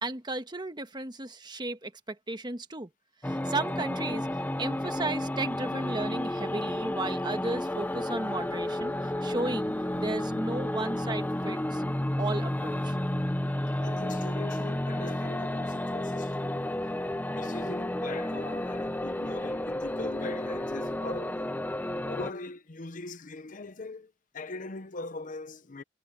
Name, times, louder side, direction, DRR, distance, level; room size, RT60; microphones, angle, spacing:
voice 1, 0.0-2.9 3.2-4.3 4.6-11.8 12.2-13.0, right 2 dB, 25° right, 1.4 m, -35 dB
sound 1, 3.2-22.3, left 1 dB, 10° left, 0.6 m, -31 dB
voice 2, 13.8-16.6 17.3-21.5 22.0-25.8, left 3 dB, 45° left, 0.8 m, -41 dB
head